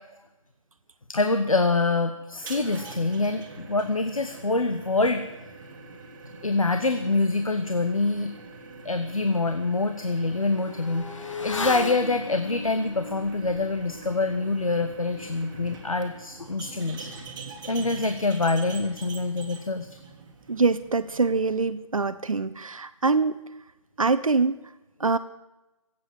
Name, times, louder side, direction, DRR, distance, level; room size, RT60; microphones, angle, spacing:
voice 1, 1.1-5.2 6.4-8.3 8.8-17.1 17.7-19.9, left 3 dB, 85° left, 8 dB, 1.2 m, -25 dB
sound 1, 2.3-21.7, right 4 dB, 40° right, 2.5 m, -43 dB
Motorcycle / Accelerating revving vroom, 8.4-8.5 8.9-18.9 19.2-19.3, left 4 dB, 65° left, 2.0 m, -39 dB
voice 2, 20.5-23.4 24.0-24.6 25.0-25.2, right 4 dB, 80° right, 10 dB, 0.9 m, -24 dB
22.5 x 8.5 x 7.4 m, 1.0 s
figure-of-eight pair, 145°, 17 cm